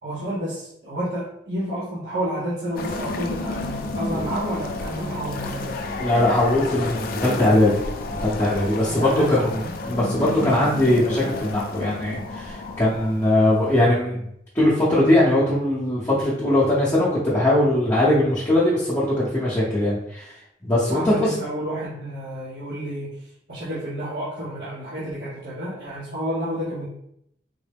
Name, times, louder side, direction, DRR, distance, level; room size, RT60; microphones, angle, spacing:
voice 1, 0.0-5.7 8.8-9.7 20.9-23.1 23.5-26.9, right 1 dB, 70° right, -9 dB, 0.9 m, -30 dB
sound 1, 2.8-13.9, left 2 dB, 55° left, 0.4 m, -31 dB
voice 2, 6.0-14.2 14.5-20.3 20.6-21.4, left 1 dB, 15° left, -9 dB, 0.8 m, -20 dB
3.7 x 2.1 x 3.4 m, 0.74 s
head